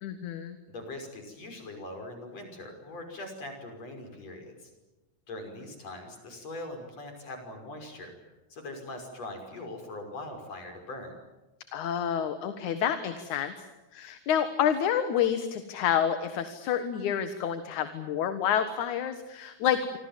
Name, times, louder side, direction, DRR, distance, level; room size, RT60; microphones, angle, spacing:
voice 1, 0.0-0.6 11.7-13.5 13.9-20.0, left 9 dB, 70° left, 9 dB, 2.9 m, -28 dB
voice 2, 0.7-4.7 5.3-8.1 8.5-11.1, left 2 dB, 55° left, 4 dB, 6.9 m, -41 dB
28.5 x 25.5 x 7.5 m, 1.1 s
omnidirectional pair, 3.6 m